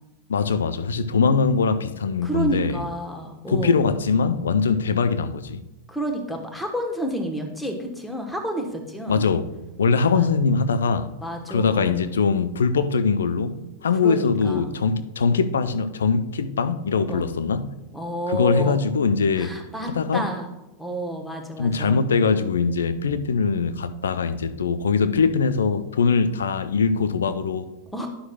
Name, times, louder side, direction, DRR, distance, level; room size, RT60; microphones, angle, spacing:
voice 1, 0.3-2.8 3.5-5.6 9.1-9.5 9.8-11.1 11.5-17.7 18.3-19.5 19.9-20.2 21.6-27.7, left 5 dB, 65° left, 11 dB, 0.5 m, -22 dB
voice 2, 2.2-3.8 5.9-9.2 10.1-10.3 11.2-12.0 14.0-14.7 17.1-17.3 17.9-18.8 19.4-20.5 20.8-22.0 27.9-28.1, right 1 dB, 5° left, 2 dB, 1.1 m, -30 dB
11.0 x 6.3 x 2.3 m, 0.97 s
figure-of-eight pair, 90°, 0 cm